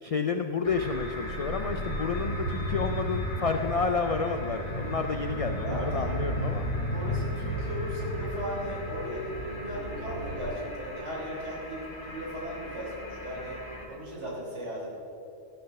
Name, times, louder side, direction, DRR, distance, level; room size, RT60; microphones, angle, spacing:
voice 1, 0.0-6.7, left 5 dB, 60° left, 6 dB, 0.3 m, -30 dB
sound 1, 0.6-13.9, left 1 dB, 25° left, 1.9 m, -42 dB
sound 2, 0.7-10.5, equal, 90° left, 2.8 m, -33 dB
voice 2, 5.6-6.3 6.9-13.6 13.9-14.9, equal, 65° right, -6 dB, 3.7 m, -37 dB
14.5 x 6.8 x 6.6 m, 2.6 s
omnidirectional pair, 1.3 m